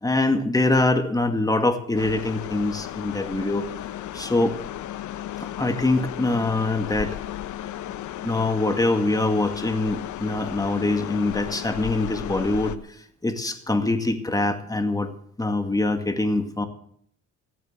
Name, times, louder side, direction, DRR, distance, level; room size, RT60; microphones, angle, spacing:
voice 1, 0.0-3.6 4.1-4.6 5.4-7.2 8.2-13.0 13.2-15.1 15.4-16.7, left 2 dB, 10° left, 6 dB, 2.1 m, -24 dB
sound 1, 1.9-12.8, left 12 dB, 80° left, 1.0 m, -34 dB
15.5 x 9.6 x 7.4 m, 0.65 s
cardioid pair, 90°, 30 cm